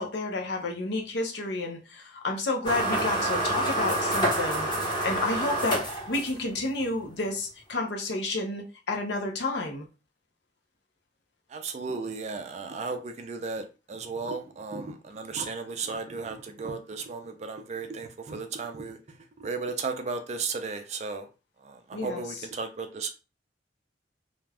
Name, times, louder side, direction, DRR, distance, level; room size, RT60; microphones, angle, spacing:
voice 1, 0.0-9.8 21.9-22.2, left 2 dB, 65° left, 0.7 m, -30 dB
sound 1, 2.6-6.6, right 1 dB, 25° left, 1.0 m, -28 dB
voice 2, 11.5-19.0 19.4-21.3 21.6-23.1, right 4 dB, 40° right, 0.4 m, -35 dB
2.5 x 2.2 x 3.3 m
head